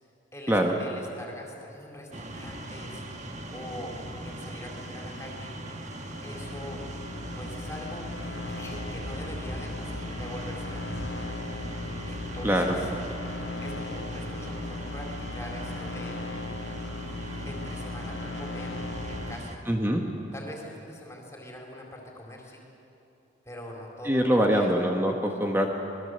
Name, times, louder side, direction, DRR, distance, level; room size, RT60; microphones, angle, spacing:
voice 1, 0.3-3.0 3.5-3.9 4.2-5.5 6.2-6.8 7.3-11.4 12.1-12.9 13.6-16.2 17.4-18.8 19.1-19.6 20.3-22.6 23.5-24.7, left 1 dB, 15° left, 0 dB, 4.3 m, -43 dB
sound 1, 2.1-19.6, right 1 dB, 35° right, 1.8 m, -39 dB
sound 2, 5.9-19.3, left 3 dB, 70° left, 0.9 m, -38 dB
voice 2, 12.4-12.7 19.7-20.0 24.0-25.7, equal, 10° right, 2 dB, 1.4 m, -23 dB
27.0 x 21.0 x 8.1 m, 2.8 s
head